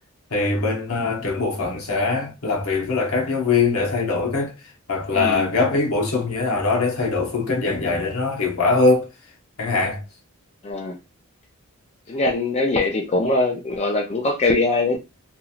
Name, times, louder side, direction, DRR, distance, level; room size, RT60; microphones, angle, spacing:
voice 1, 0.3-4.5 4.9-9.1 9.6-10.0, left 3 dB, 70° left, 0.9 m, -22 dB
voice 2, 5.1-5.5 10.6-11.0 12.1-15.0, left 2 dB, 30° left, 0.4 m, -22 dB
2.9 x 2.5 x 2.4 m
head